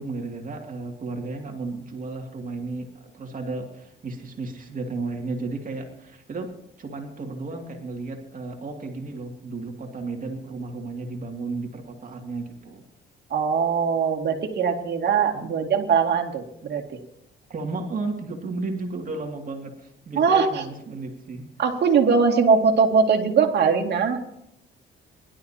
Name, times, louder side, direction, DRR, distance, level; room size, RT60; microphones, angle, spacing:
voice 1, 0.0-6.5 6.8-12.8 15.3-15.6 17.5-21.5, right 3 dB, 45° right, 2 dB, 2.5 m, -33 dB
voice 2, 13.3-17.0 20.2-20.6 21.6-24.2, right 5 dB, 60° right, 2 dB, 2.5 m, -21 dB
23.5 x 12.0 x 2.9 m, 0.77 s
cardioid pair, 90°, 20 cm